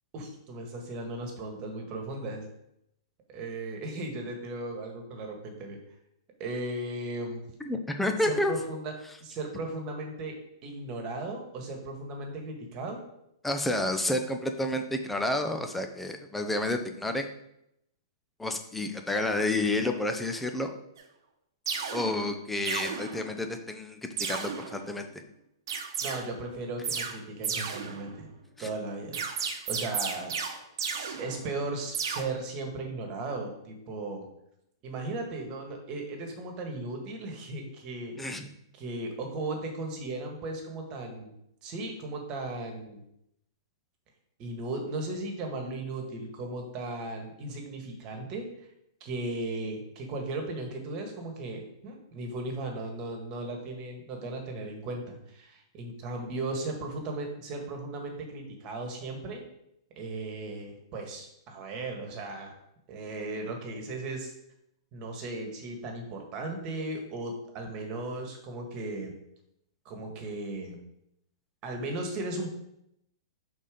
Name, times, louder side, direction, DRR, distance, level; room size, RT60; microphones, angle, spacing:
voice 1, 0.1-2.5 3.3-5.8 6.4-7.4 8.2-8.9 9.2-10.3 10.6-13.0 26.0-28.3 28.6-30.3 30.9-34.2 34.8-38.1 38.8-41.3 41.6-43.0 44.4-48.5 49.0-59.4 60.0-62.5 62.9-64.3 64.9-69.1 69.8-70.8 71.6-72.5, right 2 dB, 35° right, 2 dB, 1.6 m, -36 dB
voice 2, 7.6-8.5 13.4-17.3 18.4-20.7 21.9-25.1 28.6-28.7 38.2-38.5, left 1 dB, 5° left, 5 dB, 0.7 m, -30 dB
sound 1, 21.0-21.1 21.7-22.3 22.7-23.5 24.2-24.9 25.7-26.2 26.8-27.2 27.4-28.3 29.1-31.7 31.9-32.2, right 6 dB, 65° right, 1.0 m, -34 dB
5.4 x 4.2 x 5.1 m, 0.79 s
hypercardioid pair, 130°, 2 cm